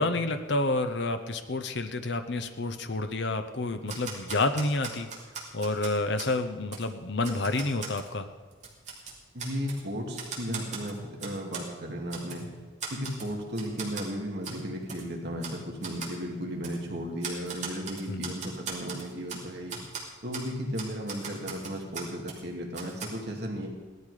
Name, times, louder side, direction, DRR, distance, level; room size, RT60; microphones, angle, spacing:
voice 1, 0.0-5.1 5.5-8.3 18.1-18.3, left 2 dB, 60° left, 8 dB, 0.8 m, -29 dB
Typewriter, 3.9-6.3 6.7-6.8 7.2-8.1 8.5-9.8 10.1-11.7 12.1-12.4 12.8-13.3 13.5-14.1 14.4-14.6 14.9-15.0 15.4-15.6 15.8-16.1 16.6-16.8 17.2-19.4 19.7-20.0 20.3-20.5 20.7-22.4 22.7-23.1, right 5 dB, 35° right, 2.9 m, -39 dB
voice 2, 9.3-12.5 12.9-19.8 20.2-23.7, equal, 55° right, 0 dB, 2.3 m, -35 dB
17.0 x 12.5 x 4.9 m, 1.4 s
head